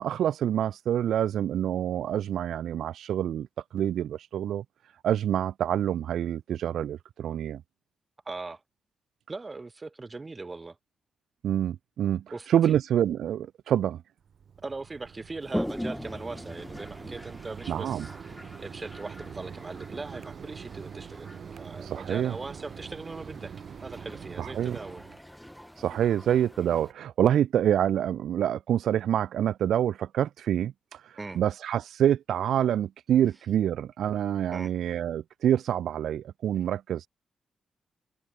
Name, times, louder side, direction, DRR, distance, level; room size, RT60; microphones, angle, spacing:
voice 1, 0.0-3.5 3.7-4.6 5.0-7.6 11.4-12.2 12.5-14.0 17.7-18.1 21.8-22.3 24.4-24.8 25.8-37.1, right 10 dB, 80° right, 0.3 m, -27 dB
voice 2, 8.3-8.6 9.3-10.8 12.3-12.7 14.6-23.6 23.8-25.0 31.2-31.4 34.5-34.7, right 3 dB, 30° right, 0.6 m, -40 dB
Mechanisms, 14.2-25.2, right 7 dB, 65° right, 3.9 m, -44 dB
Toilet flush, 15.4-26.9, equal, 5° left, 1.2 m, -41 dB
cardioid pair, 70°, 0 cm